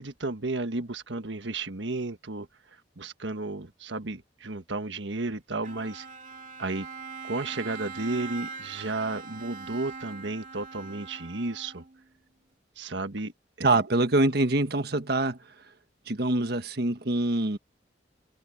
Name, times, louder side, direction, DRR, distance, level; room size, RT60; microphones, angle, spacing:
voice 1, 0.0-2.5 3.0-6.1 6.6-6.9 7.2-11.8 12.8-13.3 13.6-13.7, right 2 dB, 85° right, 1.5 m, -33 dB
Bowed string instrument, 5.6-12.0, right 5 dB, 45° right, 2.6 m, -42 dB
voice 2, 13.6-15.4 16.1-17.6, right 2 dB, 60° right, 1.5 m, -24 dB
head